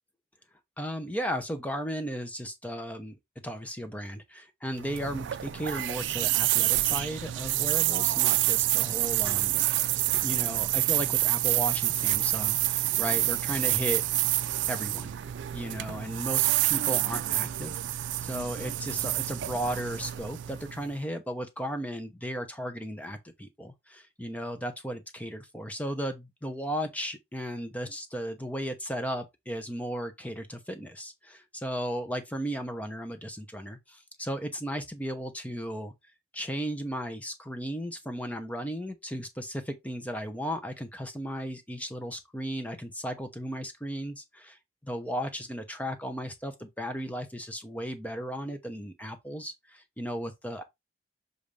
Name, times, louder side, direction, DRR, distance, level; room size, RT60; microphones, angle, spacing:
voice 1, 0.8-3.2 3.4-9.6 10.2-14.0 14.7-15.1 15.5-35.9 36.3-50.6, equal, 10° left, 0.9 m, -35 dB
sound 1, 4.7-20.9, right 16 dB, 85° right, 0.4 m, -28 dB
7.1 x 2.7 x 4.9 m
head